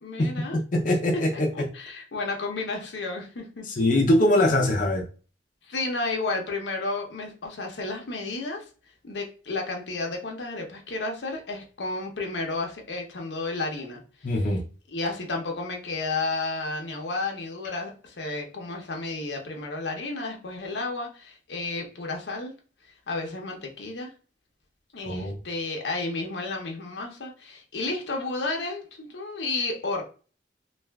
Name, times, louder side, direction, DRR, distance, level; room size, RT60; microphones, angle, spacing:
voice 1, 0.0-0.6 1.1-1.2 1.5-3.7 5.7-8.6 9.0-14.0 14.9-22.5 23.1-24.1 24.9-30.0, left 3 dB, 85° left, 0.8 m, -32 dB
voice 2, 0.7-1.7 3.7-5.1 14.2-14.6 25.0-25.4, left 1 dB, 50° left, 0.5 m, -22 dB
3.3 x 2.3 x 2.3 m
head